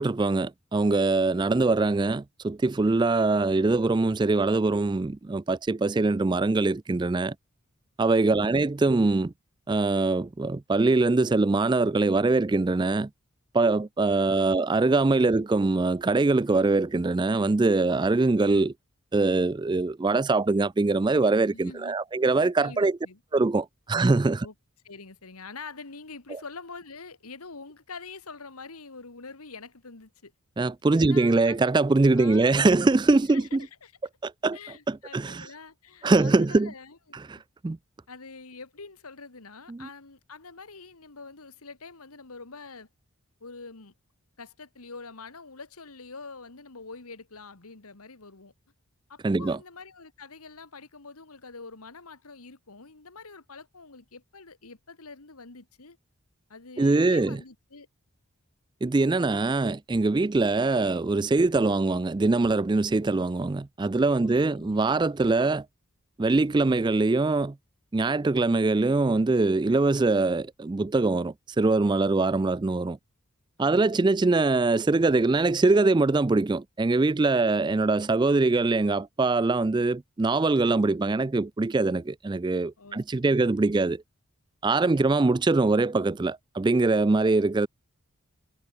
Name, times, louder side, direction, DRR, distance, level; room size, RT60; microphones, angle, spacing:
voice 1, 0.0-7.3 8.0-9.3 9.7-13.1 13.5-18.7 19.1-23.0 23.3-24.5 30.6-33.7 34.2-34.6 34.9-35.5 36.0-36.7 37.3-37.4 37.6-37.8 39.7-39.9 49.2-49.6 56.8-57.4 58.8-65.7 66.2-67.5 67.9-73.0 73.6-84.0 84.6-87.7, right 3 dB, 20° right, 0.3 m, -23 dB
voice 2, 21.5-22.0 22.6-23.2 24.4-24.5 24.8-30.3 31.0-31.7 32.1-32.6 33.3-33.9 34.5-37.0 37.3-37.4 38.1-42.9 43.4-43.9 44.4-48.5 49.1-56.0 56.5-57.9 64.2-64.8 73.6-74.3 77.4-77.8 82.8-83.7 84.9-85.2, left 4 dB, 80° left, 2.0 m, -45 dB
head